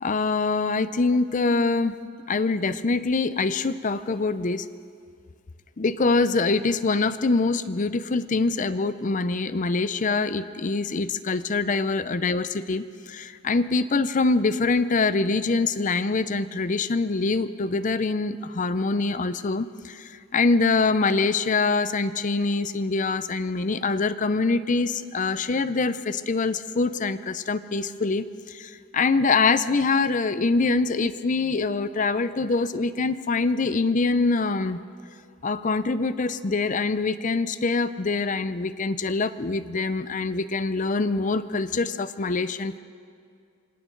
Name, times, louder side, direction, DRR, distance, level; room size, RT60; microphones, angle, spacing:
voice 1, 0.0-2.0 2.3-4.7 5.8-34.8 35.4-42.8, left 3 dB, 40° left, 13 dB, 0.6 m, -24 dB
27.0 x 25.0 x 3.9 m, 2.3 s
head